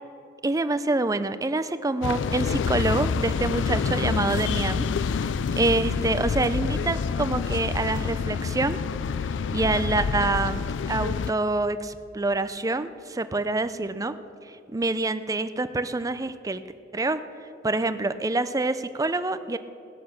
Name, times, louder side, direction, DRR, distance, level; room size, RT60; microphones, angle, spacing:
voice 1, 0.4-4.9 5.1-5.3 5.6-8.8 9.5-10.6 10.9-14.2 14.7-16.6 16.9-17.2 17.6-19.6, right 2 dB, 20° right, 12 dB, 0.5 m, -26 dB
sound 1, 2.0-11.3, left 5 dB, 80° left, 0.4 m, -27 dB
18.0 x 10.0 x 6.6 m, 2.6 s
head